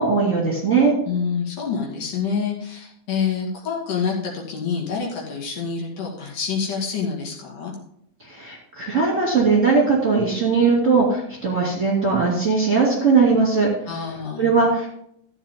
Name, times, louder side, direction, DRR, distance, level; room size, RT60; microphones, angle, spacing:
voice 1, 0.0-0.9 8.2-13.7 14.4-14.9, right 4 dB, 25° right, -4 dB, 2.4 m, -19 dB
voice 2, 1.1-7.7 13.9-14.5, left 6 dB, 65° left, -2 dB, 3.5 m, -27 dB
13.5 x 8.2 x 3.7 m, 0.71 s
omnidirectional pair, 4.3 m